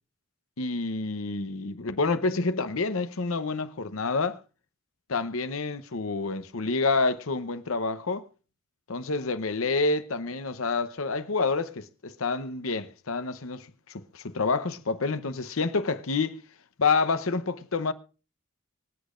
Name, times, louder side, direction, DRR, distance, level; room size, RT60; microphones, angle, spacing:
voice 1, 0.6-4.4 5.1-8.3 8.9-16.3 16.8-17.9, left 3 dB, 75° left, 0.9 m, -28 dB
25.0 x 8.5 x 2.5 m
head